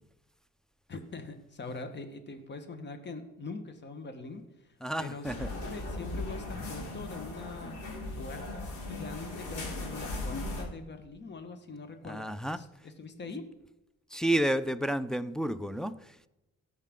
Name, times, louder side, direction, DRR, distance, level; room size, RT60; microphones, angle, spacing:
voice 1, 0.9-7.7 8.2-13.4, left 3 dB, 35° left, 8 dB, 1.4 m, -43 dB
voice 2, 4.8-5.5 12.0-12.6 14.1-16.3, right 1 dB, ahead, 9 dB, 0.5 m, -31 dB
sound 1, 5.2-10.6, left 2 dB, 75° left, 3.5 m, -38 dB
16.5 x 6.6 x 3.7 m, 0.94 s
cardioid pair, 90°, 30 cm